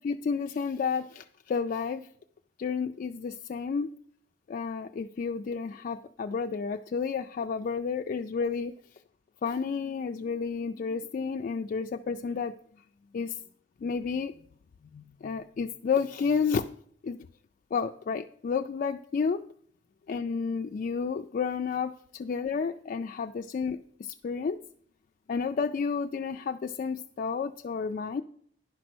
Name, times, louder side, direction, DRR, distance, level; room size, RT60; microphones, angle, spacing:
voice 1, 0.0-2.1 2.6-3.9 4.5-8.7 9.4-12.5 13.1-13.4 13.8-14.3 14.9-16.7 17.0-17.2 17.7-19.4 20.1-24.6 25.3-28.2, left 5 dB, 50° left, 6 dB, 0.3 m, -31 dB
10.5 x 5.2 x 6.1 m, 0.64 s
head